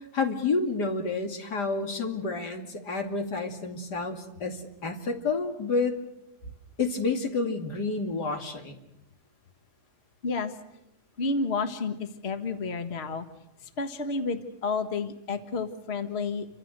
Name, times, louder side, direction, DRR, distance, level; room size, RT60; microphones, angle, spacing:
voice 1, 0.1-6.0 6.8-8.8, left 4 dB, 90° left, 4 dB, 3.2 m, -29 dB
voice 2, 11.2-13.3 13.8-16.5, left 4 dB, 40° left, 8 dB, 1.7 m, -30 dB
29.0 x 25.0 x 6.6 m, 0.86 s
omnidirectional pair, 1.7 m